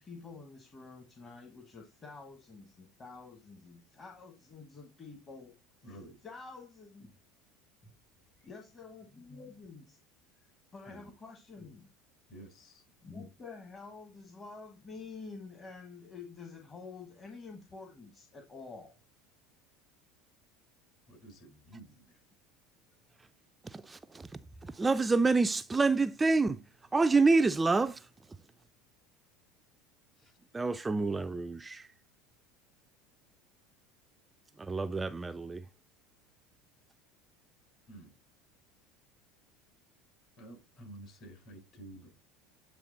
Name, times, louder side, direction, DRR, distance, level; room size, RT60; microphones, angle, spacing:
voice 1, 0.0-5.5 5.8-6.0 6.2-7.1 8.4-10.0 10.7-11.9 13.0-19.0, left 4 dB, 30° left, 1.3 m, -48 dB
voice 2, 5.8-6.2 10.9-11.0 12.3-12.8 21.1-22.2 30.2-30.3 37.9-38.1 40.4-42.1, right 1 dB, 50° left, 4.1 m, -51 dB
voice 3, 23.6-28.4 30.5-31.9 34.6-35.7, right 3 dB, 15° right, 0.3 m, -28 dB
8.4 x 3.1 x 3.9 m
hypercardioid pair, 75°, 0 cm